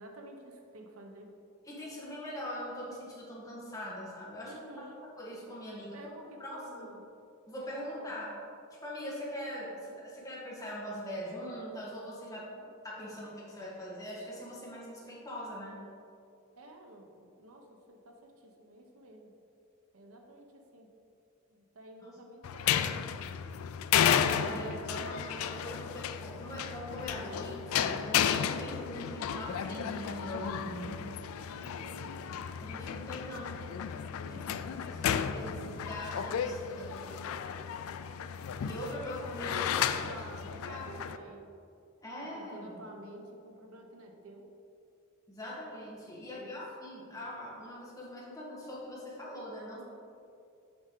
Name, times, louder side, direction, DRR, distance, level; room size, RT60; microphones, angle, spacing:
voice 1, 0.0-1.3 4.4-5.0 5.9-7.0 7.6-8.1 12.3-12.7 16.6-19.3 19.9-20.9 21.5-22.8 30.6-31.0 31.4-32.2 34.2-34.6 36.8-37.3 39.5-41.5 42.2-44.5 46.1-46.6, right 1 dB, 75° right, 2 dB, 0.8 m, -51 dB
voice 2, 1.7-4.5 5.2-6.1 6.4-6.9 7.5-8.3 8.8-12.4 12.8-15.8 24.3-31.0 32.6-33.6 34.2-34.4 34.8-37.0 38.6-40.1 40.6-41.0 42.0-42.8 45.3-49.8, equal, 15° left, -5 dB, 1.3 m, -42 dB
sound 1, 22.4-41.2, left 8 dB, 70° left, 0.3 m, -33 dB
6.9 x 5.5 x 3.7 m, 2.6 s
head